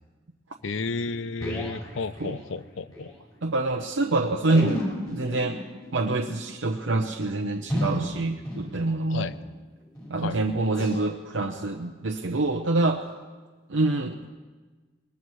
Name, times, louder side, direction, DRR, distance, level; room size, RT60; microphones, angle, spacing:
voice 1, 0.6-3.1 9.1-9.3 10.2-10.4, left 4 dB, 80° left, 15 dB, 0.6 m, -32 dB
sound 1, 0.6-0.7 1.0-3.1 3.4-3.5 3.7-3.8 4.4-9.5 9.9-10.2 10.7-11.0 11.5-11.7 12.2-12.4 13.0-13.1, equal, 20° left, 4.9 m, -35 dB
voice 2, 3.4-4.8 5.1-5.6 5.9-9.3 10.1-13.0 13.7-14.4, right 2 dB, 90° right, 2 dB, 0.8 m, -26 dB
21.5 x 21.0 x 3.2 m, 1.3 s
head